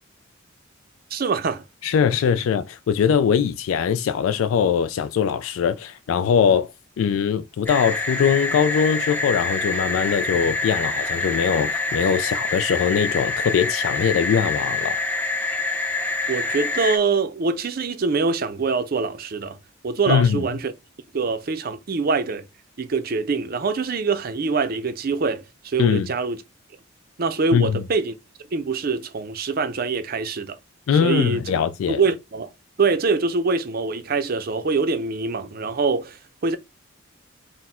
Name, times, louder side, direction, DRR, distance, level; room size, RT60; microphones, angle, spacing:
voice 1, 1.1-1.6 16.3-19.6 19.8-20.7 21.1-22.5 22.8-26.4 27.2-28.2 28.5-30.6 31.0-31.4 31.9-32.5 32.8-36.6, right 4 dB, 45° right, 0.5 m, -24 dB
voice 2, 1.8-15.0 20.1-20.4 25.8-26.1 27.5-27.8 30.9-32.0, left 7 dB, 80° left, 0.3 m, -21 dB
sound 1, 7.7-17.0, left 3 dB, 10° left, 0.7 m, -26 dB
4.1 x 2.1 x 4.2 m
head